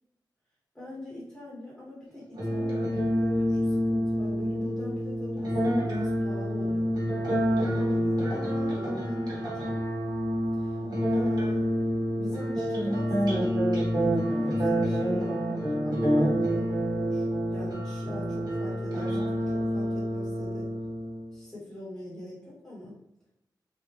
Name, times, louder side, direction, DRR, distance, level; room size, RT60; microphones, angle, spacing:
voice 1, 0.7-9.8 10.5-11.7 12.1-13.4 14.0-16.7 17.0-20.7 21.3-23.0, left 1 dB, 10° left, -8 dB, 1.1 m, -43 dB
sound 1, 2.4-21.3, equal, 60° right, 1.2 m, -27 dB
3.4 x 2.5 x 2.9 m, 0.80 s
wide cardioid pair, 100°, 8 cm